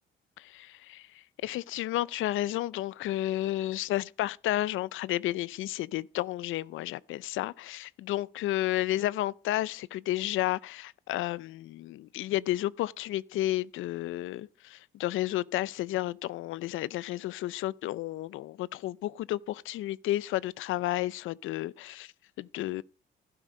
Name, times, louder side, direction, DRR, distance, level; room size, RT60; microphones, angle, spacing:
voice 1, 0.4-22.1 22.4-22.8, left 15 dB, 85° left, 0.6 m, -32 dB
15.5 x 12.0 x 5.1 m
cardioid pair, 90°, 20 cm